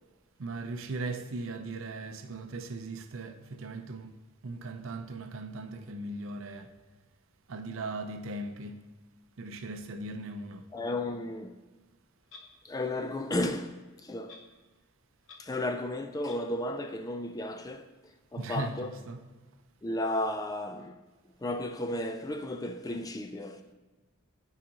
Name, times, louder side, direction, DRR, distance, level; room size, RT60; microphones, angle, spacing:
voice 1, 0.4-4.2 4.4-6.7 7.5-8.9 9.4-10.7 18.4-19.2, right 2 dB, 70° right, 0.6 m, -38 dB
voice 2, 10.7-11.6 12.6-14.4 15.4-17.9 18.3-18.9 19.8-21.0 21.4-23.6, left 1 dB, 15° left, 0.3 m, -33 dB
Clock, 12.3-12.5 13.3-13.4 14.3-14.5 14.8-14.9 15.2-15.4 16.3-16.4, left 4 dB, 65° left, 0.9 m, -50 dB
11.0 x 4.8 x 2.8 m
head